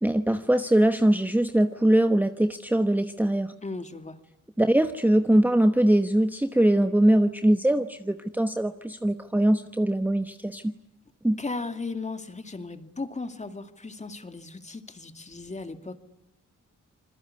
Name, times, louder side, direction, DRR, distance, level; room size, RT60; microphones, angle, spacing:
voice 1, 0.0-3.5 4.6-10.7 11.2-11.4, right 1 dB, 5° right, 8 dB, 1.1 m, -22 dB
voice 2, 3.6-4.2 11.4-16.0, left 3 dB, 20° left, 8 dB, 2.4 m, -36 dB
27.0 x 21.0 x 9.8 m, 0.84 s
cardioid pair, 95°, 31 cm